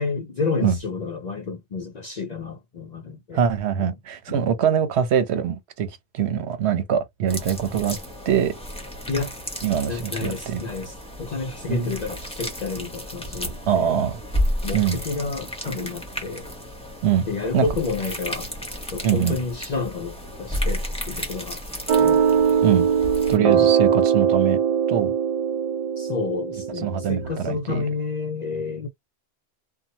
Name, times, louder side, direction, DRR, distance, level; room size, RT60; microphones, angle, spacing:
voice 1, 0.0-3.4 3.8-3.9 4.3-4.5 9.1-9.3 9.9-14.0 14.6-16.5 17.3-18.5 18.9-21.6 21.9-22.2 23.4-23.7 26.0-28.9, left 4 dB, 55° left, 0.5 m, -30 dB
voice 2, 3.3-8.0 8.3-8.5 9.6-10.6 11.7-12.0 13.7-14.2 14.7-15.0 17.0-17.3 17.5-17.6 19.0-19.4 22.6-22.9 23.3-24.6 24.9-25.1 26.8-27.9, right 8 dB, 75° right, 1.0 m, -23 dB
sound 1, 7.3-23.4, equal, 5° left, 0.8 m, -32 dB
sound 2, 21.9-27.4, right 7 dB, 55° right, 0.4 m, -21 dB
2.8 x 2.2 x 2.7 m
omnidirectional pair, 1.1 m